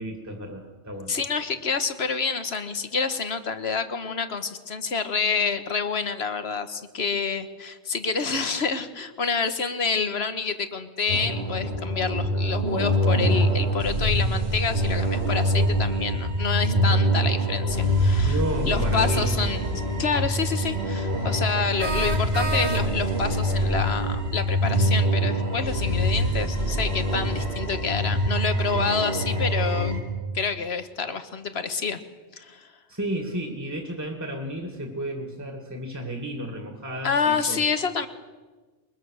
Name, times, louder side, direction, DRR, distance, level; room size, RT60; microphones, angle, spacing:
voice 1, 0.0-1.1 18.2-19.3 32.9-37.6, right 1 dB, 15° right, 3 dB, 2.3 m, -32 dB
voice 2, 1.1-18.4 18.6-29.9 30.3-32.0 32.3-32.7 37.0-38.1, left 5 dB, 70° left, 10 dB, 1.6 m, -28 dB
sound 1, 11.1-30.0, equal, 70° right, 4.0 m, -24 dB
sound 2, 19.5-19.6 21.8-23.2, right 2 dB, 40° right, 1.5 m, -30 dB
23.0 x 21.0 x 6.5 m, 1.3 s
omnidirectional pair, 1.1 m